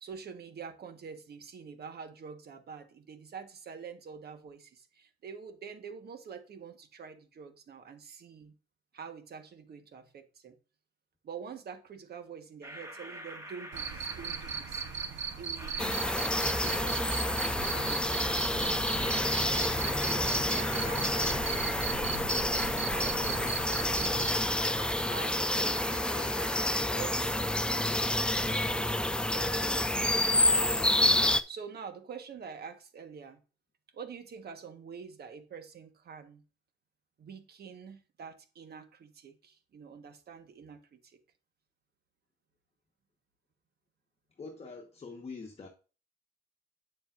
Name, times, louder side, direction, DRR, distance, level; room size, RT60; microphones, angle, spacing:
voice 1, 0.0-8.5 8.9-10.6 11.2-14.8 15.4-17.2 17.6-19.6 20.0-24.3 25.0-26.4 26.7-28.9 29.3-30.9 31.5-33.4 33.9-36.4 37.2-41.2, right 6 dB, 55° right, 1.3 m, -47 dB
sound 1, 12.6-28.6, right 1 dB, 15° right, 1.8 m, -46 dB
Cricket, 13.7-24.4, right 6 dB, 70° right, 1.0 m, -37 dB
sound 2, 15.8-31.4, left 1 dB, 5° left, 0.4 m, -29 dB
voice 2, 44.3-45.7, left 4 dB, 30° left, 1.2 m, -44 dB
8.8 x 7.1 x 2.5 m
cardioid pair, 90°, 20 cm